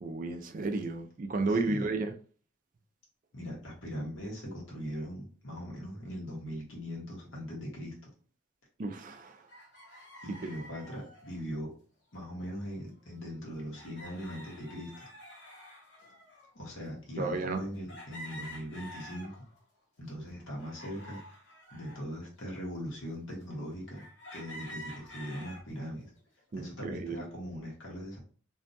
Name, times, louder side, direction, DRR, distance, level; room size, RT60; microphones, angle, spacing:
voice 1, 0.0-2.1 8.8-9.3 17.2-17.6 26.5-27.3, right 3 dB, 40° right, 0.3 m, -32 dB
voice 2, 1.5-1.9 3.3-7.9 10.2-11.7 12.1-15.1 16.5-19.3 20.0-21.2 21.7-24.0 24.3-26.1 26.5-28.2, equal, 75° left, 1.1 m, -40 dB
sound 1, 9.5-11.4 12.6-12.7 13.0-13.1 13.7-16.5 17.1-17.2 17.9-19.6 20.1-22.0 22.7-22.8 23.9-25.6 26.2-26.6, equal, 60° left, 0.9 m, -48 dB
2.6 x 2.2 x 2.6 m
head